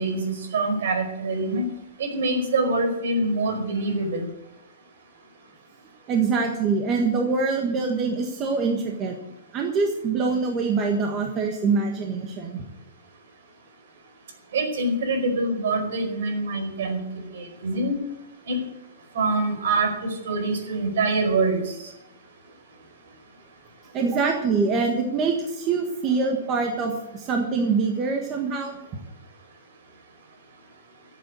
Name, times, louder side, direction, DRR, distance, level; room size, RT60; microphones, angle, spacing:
voice 1, 0.0-1.7 2.0-4.3 14.5-17.0 17.3-17.9 18.5-18.6 19.1-21.7, right 2 dB, 60° right, 5 dB, 4.9 m, -25 dB
voice 2, 6.1-9.1 9.5-12.6 23.9-28.8, right 4 dB, 20° right, 2 dB, 1.4 m, -24 dB
14.0 x 8.3 x 8.2 m, 0.89 s
hypercardioid pair, 175°, 0 cm